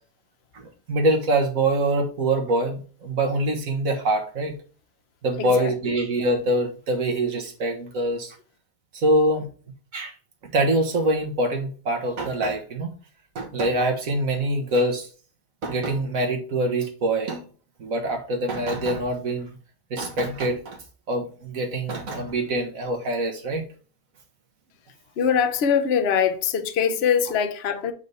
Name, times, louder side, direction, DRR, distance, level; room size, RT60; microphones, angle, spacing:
voice 1, 0.5-4.6 5.2-8.4 8.9-9.5 9.9-10.1 10.4-12.9 13.4-15.1 15.6-17.4 17.8-19.6 19.9-20.8 21.1-23.6, right 1 dB, 70° right, 1.8 m, -24 dB
voice 2, 5.4-5.7 25.2-27.9, left 7 dB, 55° left, 0.9 m, -22 dB
8.3 x 3.4 x 4.1 m
omnidirectional pair, 1.5 m